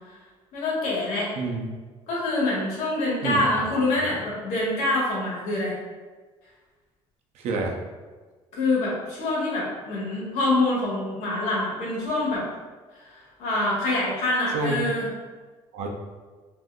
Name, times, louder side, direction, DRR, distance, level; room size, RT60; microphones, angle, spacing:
voice 1, 0.5-1.3 2.1-5.7 8.5-12.4 13.0-15.1, left 2 dB, 80° left, -5 dB, 1.2 m, -25 dB
voice 2, 1.4-1.7 3.2-3.4 4.0-4.1 7.4-7.8 14.5-14.8 15.7-15.9, right 3 dB, 70° right, 1 dB, 0.5 m, -28 dB
3.6 x 2.6 x 2.2 m, 1.4 s
cardioid pair, 135°, 12 cm